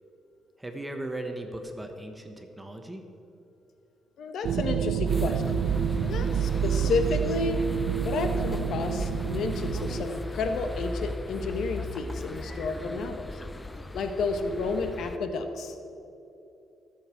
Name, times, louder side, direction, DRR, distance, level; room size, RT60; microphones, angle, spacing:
voice 1, 0.6-3.1, right 1 dB, 10° right, 4 dB, 1.2 m, -37 dB
voice 2, 4.2-5.4 6.0-7.6 8.0-13.4 13.9-15.8, left 3 dB, 70° left, 7 dB, 1.2 m, -31 dB
sound 1, 4.4-10.0, right 8 dB, 75° right, 0.5 m, -28 dB
sound 2, 5.1-15.2, left 2 dB, 15° left, 0.5 m, -37 dB
12.5 x 7.1 x 8.3 m, 2.8 s
cardioid pair, 90°, 0 cm